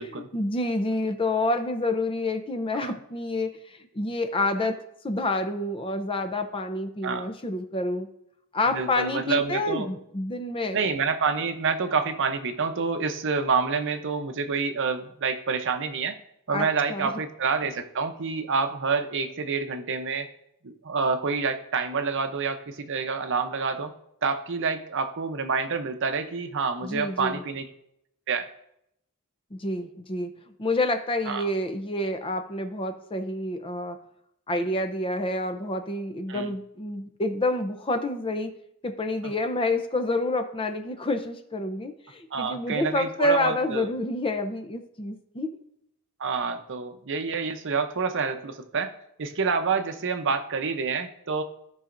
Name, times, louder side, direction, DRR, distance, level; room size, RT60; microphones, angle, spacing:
voice 1, 0.0-4.8 5.0-8.1 8.5-10.8 16.5-17.1 26.8-27.4 29.5-30.3 30.6-34.0 34.5-38.5 38.8-45.5, left 2 dB, 25° left, 8 dB, 0.6 m, -28 dB
voice 2, 8.7-9.9 10.7-16.2 16.5-20.3 20.6-23.9 24.2-27.7 28.3-28.5 31.3-31.5 36.3-36.5 39.2-39.3 42.3-43.9 46.2-48.9 49.2-51.4, right 5 dB, 55° right, 8 dB, 0.7 m, -28 dB
15.5 x 5.5 x 2.6 m, 0.77 s
head